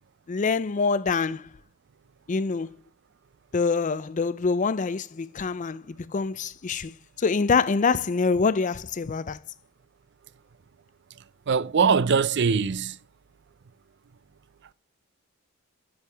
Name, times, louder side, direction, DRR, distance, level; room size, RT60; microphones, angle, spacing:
voice 1, 0.3-1.4 2.3-2.7 3.5-9.4, left 4 dB, 35° left, 0.4 m, -25 dB
voice 2, 11.5-13.0, right 5 dB, 55° right, 0.5 m, -22 dB
9.9 x 7.9 x 3.4 m
head